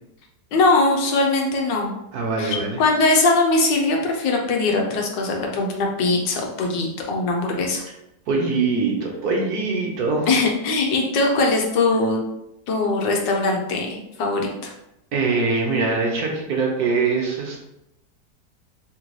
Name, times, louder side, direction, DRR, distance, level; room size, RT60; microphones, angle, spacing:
voice 1, 0.5-2.0 2.4-7.8 10.3-12.2 12.7-14.7, left 3 dB, 80° left, 0 dB, 1.5 m, -21 dB
voice 2, 2.1-2.8 8.3-10.3 15.1-17.6, right 4 dB, 65° right, 0 dB, 1.2 m, -23 dB
3.8 x 3.6 x 3.1 m, 0.84 s
omnidirectional pair, 1.9 m